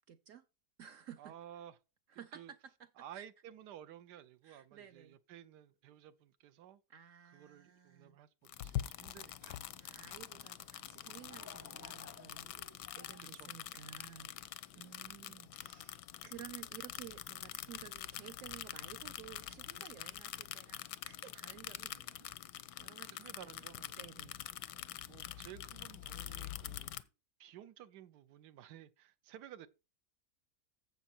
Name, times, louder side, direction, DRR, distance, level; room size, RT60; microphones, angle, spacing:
voice 1, 0.1-0.4 0.8-1.3 2.1-3.3 4.4-5.2 6.9-8.2 9.8-12.6 12.9-22.3 22.8-24.4, right 9 dB, 65° right, 0.8 m, -54 dB
voice 2, 1.2-1.7 2.3-2.5 3.0-6.8 7.3-9.6 13.2-13.5 14.7-14.9 15.2-15.3 23.1-23.8 25.0-27.1 27.4-29.7, right 11 dB, 90° right, 1.3 m, -54 dB
sound 1, 8.4-27.0, left 12 dB, 90° left, 1.2 m, -45 dB
Laughter / Crowd, 10.6-14.4, left 4 dB, 30° left, 0.3 m, -57 dB
10.0 x 7.2 x 4.3 m
omnidirectional pair, 1.7 m